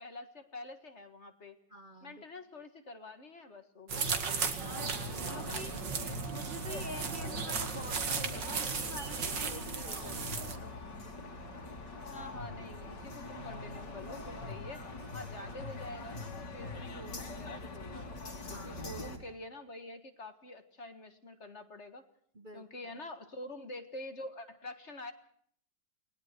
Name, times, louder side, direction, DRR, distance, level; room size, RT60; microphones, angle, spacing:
voice 1, 0.0-1.6 2.0-4.1 5.2-6.2 12.0-14.8 15.1-18.1 18.5-22.1 22.5-25.1, left 2 dB, 40° left, 8 dB, 2.0 m, -47 dB
voice 2, 1.7-2.2 4.6-5.7 6.3-10.6 18.4-19.0 22.3-22.9, right 1 dB, 30° right, 6 dB, 1.2 m, -47 dB
sound 1, 3.9-10.6, right 5 dB, 90° right, 2.6 m, -36 dB
sound 2, 4.6-19.2, left 2 dB, 80° left, 3.7 m, -43 dB
28.5 x 20.5 x 4.5 m, 0.62 s
omnidirectional pair, 1.9 m